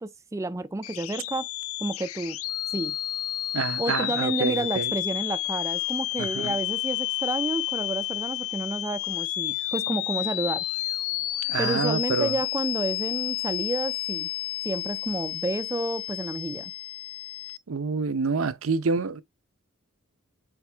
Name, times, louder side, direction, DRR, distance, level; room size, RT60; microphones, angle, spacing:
voice 1, 0.0-1.5 1.8-2.4 2.7-3.0 3.8-10.6 11.6-14.3 14.6-16.7, right 2 dB, 15° right, 0.4 m, -30 dB
sound 1, 0.8-17.6, left 16 dB, 80° left, 0.5 m, -31 dB
voice 2, 3.5-4.9 6.2-6.6 11.5-12.4 17.7-19.2, right 4 dB, 70° right, 0.7 m, -27 dB
7.9 x 3.6 x 3.3 m
head